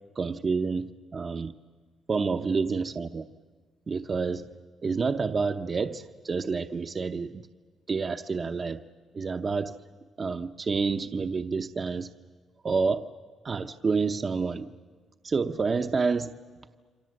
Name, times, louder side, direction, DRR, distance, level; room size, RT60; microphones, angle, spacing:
voice 1, 0.2-1.5 2.1-3.2 3.9-4.5 4.8-7.4 7.9-8.8 9.1-9.8 10.2-12.1 12.6-13.1 13.4-14.7 15.2-16.3, right 4 dB, 40° right, 0.8 m, -28 dB
28.0 x 25.0 x 7.7 m
cardioid pair, 90°, 0 cm